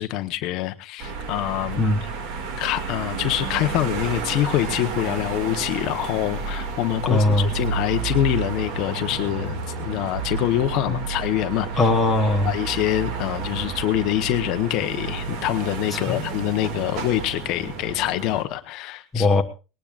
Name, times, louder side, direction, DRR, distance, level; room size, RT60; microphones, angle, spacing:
voice 1, 0.0-2.1 2.6-11.9 12.4-19.3, left 14 dB, 40° left, 9 dB, 0.9 m, -25 dB
sound 1, 1.0-18.4, right 5 dB, 45° right, 2.1 m, -31 dB
voice 2, 7.1-7.5 10.9-11.0 11.8-12.5 16.1-16.2 19.1-19.4, left 2 dB, 5° left, 3 dB, 1.2 m, -20 dB
19.5 x 19.5 x 2.4 m, 0.32 s
supercardioid pair, 180°, 0 cm